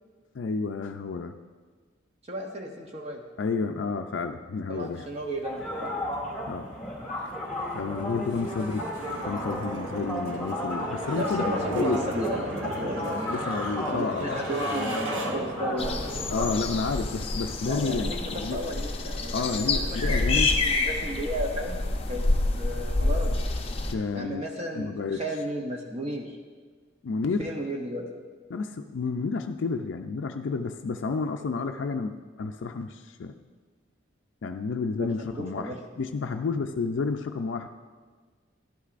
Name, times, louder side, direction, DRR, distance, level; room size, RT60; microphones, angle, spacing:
voice 1, 0.3-1.3 3.4-5.1 6.5-6.7 7.2-7.4 7.7-8.9 9.2-12.0 13.3-14.4 16.3-18.6 19.3-20.6 23.9-24.4 24.7-25.2 27.0-27.5 28.5-33.3 34.4-37.7, left 4 dB, 75° left, 5 dB, 0.4 m, -30 dB
voice 2, 2.3-3.2 4.7-5.9 11.2-13.6 13.9-16.1 17.6-20.0 20.3-23.3 24.1-26.4 27.4-28.1 35.0-35.8 37.6-37.7, right 1 dB, 35° right, 1 dB, 0.7 m, -34 dB
sound 1, 4.8-24.1, right 1 dB, 90° right, 1.3 m, -40 dB
sound 2, 5.4-16.7, left 1 dB, 5° left, 2.3 m, -34 dB
sound 3, 15.8-23.9, left 2 dB, 30° left, 0.6 m, -28 dB
11.5 x 11.5 x 2.5 m, 1.5 s
head